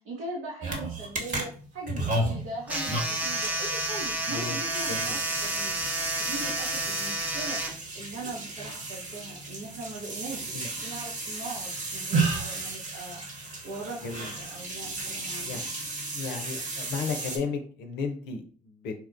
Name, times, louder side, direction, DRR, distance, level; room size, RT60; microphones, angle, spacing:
voice 1, 0.0-10.6 10.8-15.6, right 2 dB, 70° right, -4 dB, 0.9 m, -40 dB
sound 1, 0.6-17.4, right 2 dB, 40° right, 1.1 m, -34 dB
sound 2, 2.7-7.7, right 1 dB, 10° right, 0.9 m, -30 dB
voice 2, 4.3-4.6 4.9-5.2 10.5-10.7 14.0-14.3 15.4-15.7 16.1-18.9, left 5 dB, 65° left, 5 dB, 0.6 m, -34 dB
4.3 x 2.2 x 2.4 m, 0.43 s
hypercardioid pair, 55°, 19 cm